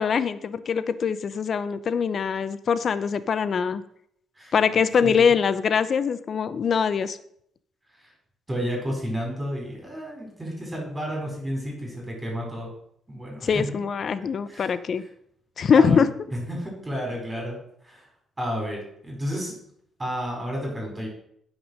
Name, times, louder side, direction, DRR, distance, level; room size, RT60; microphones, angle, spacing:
voice 1, 0.0-3.8 4.5-7.2 13.4-15.0 15.6-16.1, left 6 dB, 50° left, 14 dB, 0.7 m, -23 dB
voice 2, 5.0-5.4 8.0-8.1 8.5-12.7 13.1-13.6 14.5-15.1 15.7-17.6 17.8-18.1 18.4-19.5 20.0-21.1, equal, 15° right, -1 dB, 4.8 m, -32 dB
9.4 x 6.1 x 6.4 m, 0.70 s
cardioid pair, 90°, 0 cm